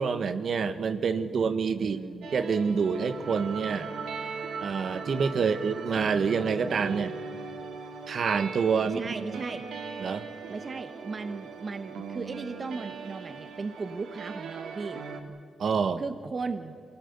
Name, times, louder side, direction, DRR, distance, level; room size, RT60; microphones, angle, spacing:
voice 1, 0.0-2.0 2.3-3.9 4.6-7.1 8.1-9.0 9.3-9.4 10.0-10.2 15.6-16.0, right 5 dB, 65° right, 10 dB, 1.2 m, -27 dB
voice 2, 1.8-2.3 8.9-9.7 10.5-15.0 16.0-16.7, right 4 dB, 40° right, 9 dB, 0.9 m, -36 dB
sound 1, 2.2-15.2, right 5 dB, 90° right, 2.2 m, -39 dB
24.5 x 18.0 x 8.1 m, 2.3 s
cardioid pair, 95°, 0 cm